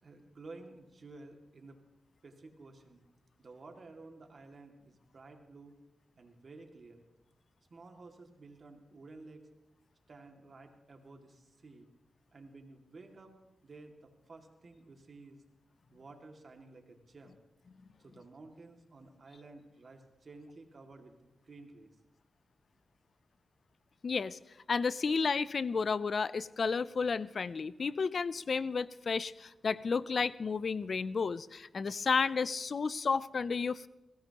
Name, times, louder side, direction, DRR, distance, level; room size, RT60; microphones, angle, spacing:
voice 1, 0.0-1.8 2.2-3.0 3.4-5.8 6.2-7.0 7.7-9.5 10.1-11.9 12.3-13.3 13.6-15.4 15.9-17.4 18.0-21.1 21.4-22.0, right 3 dB, 55° right, 3 dB, 2.2 m, -53 dB
voice 2, 24.0-24.4 24.7-33.9, left 5 dB, 60° left, 18 dB, 0.4 m, -32 dB
21.5 x 17.0 x 2.9 m, 0.95 s
cardioid pair, 75°, 0 cm